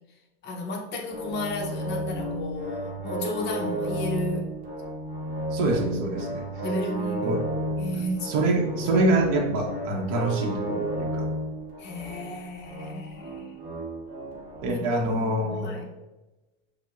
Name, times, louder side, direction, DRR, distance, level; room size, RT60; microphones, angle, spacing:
voice 1, 0.4-4.5 6.6-7.3 7.8-8.6 11.8-13.5 14.7-15.9, left 1 dB, 30° left, 1 dB, 0.6 m, -33 dB
sound 1, 1.1-15.1, right 1 dB, 25° right, 1.0 m, -33 dB
voice 2, 5.5-6.4 7.2-7.4 8.2-11.3 14.6-15.7, right 2 dB, 45° right, 0 dB, 0.8 m, -25 dB
5.9 x 2.1 x 2.3 m, 1.1 s
supercardioid pair, 140°, 38 cm